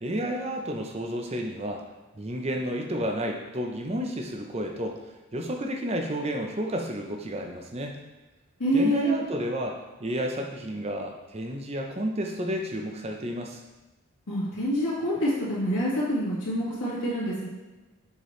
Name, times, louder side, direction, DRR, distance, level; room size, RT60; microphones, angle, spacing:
voice 1, 0.0-1.8 2.1-8.0 8.7-13.6, equal, 30° right, 2 dB, 0.6 m, -31 dB
voice 2, 8.6-9.1 14.3-17.5, equal, 80° left, -11 dB, 1.9 m, -26 dB
6.5 x 4.9 x 3.2 m, 1.1 s
head